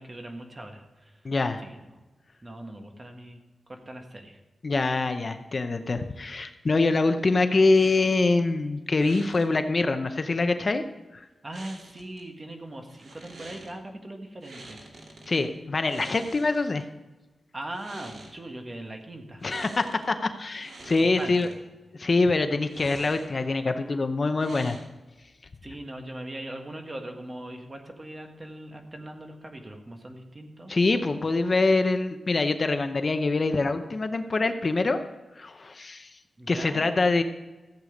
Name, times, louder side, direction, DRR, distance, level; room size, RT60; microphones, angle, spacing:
voice 1, 0.0-1.2 1.6-1.9 2.4-3.4 3.7-4.4 11.4-14.8 17.5-19.5 21.0-21.5 25.6-30.7 36.4-36.9, right 1 dB, 25° right, 3 dB, 1.6 m, -40 dB
voice 2, 1.2-1.6 4.6-10.8 11.1-11.3 15.3-16.8 19.4-21.5 21.9-24.8 30.7-35.0 35.4-36.1 36.5-37.2, left 3 dB, 40° left, 8 dB, 0.7 m, -24 dB
sound 1, 7.7-8.3 9.0-9.5 11.5-12.2 12.9-13.7 14.4-15.5 15.8-16.8 17.6-18.3 19.4-20.1 20.4-21.5 22.6-23.5 24.4-25.1, right 2 dB, 85° right, 2.7 m, -46 dB
14.5 x 8.1 x 5.1 m, 1.1 s
wide cardioid pair, 135°, 0 cm